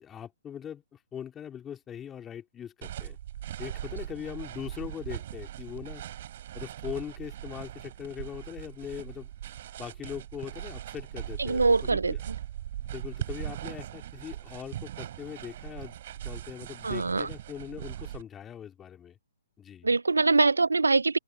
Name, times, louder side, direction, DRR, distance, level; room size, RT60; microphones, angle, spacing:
voice 1, 0.0-3.2 3.6-6.0 6.5-9.3 9.8-12.2 12.9-19.2 19.6-19.9, left 9 dB, 15° left, 3.1 m, -41 dB
sound 1, 2.8-18.2, right 12 dB, 50° right, 5.4 m, -39 dB
voice 2, 11.4-12.1 16.8-17.3 19.8-21.2, right 3 dB, 85° right, 0.4 m, -23 dB
figure-of-eight pair, 130°, 0 cm